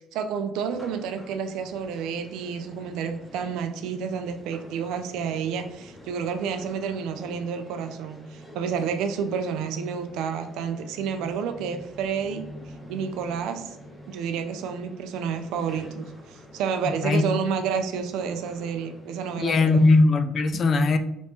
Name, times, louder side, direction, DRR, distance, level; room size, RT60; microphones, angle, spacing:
voice 1, 0.1-12.4 12.9-13.8 14.1-19.8, right 6 dB, 80° right, 7 dB, 0.4 m, -30 dB
sound 1, 0.7-20.0, equal, 5° right, 0.8 m, -47 dB
voice 2, 16.9-17.2 19.4-21.0, left 3 dB, 40° left, 9 dB, 0.3 m, -20 dB
3.0 x 2.7 x 3.5 m, 0.86 s
cardioid pair, 115°, 0 cm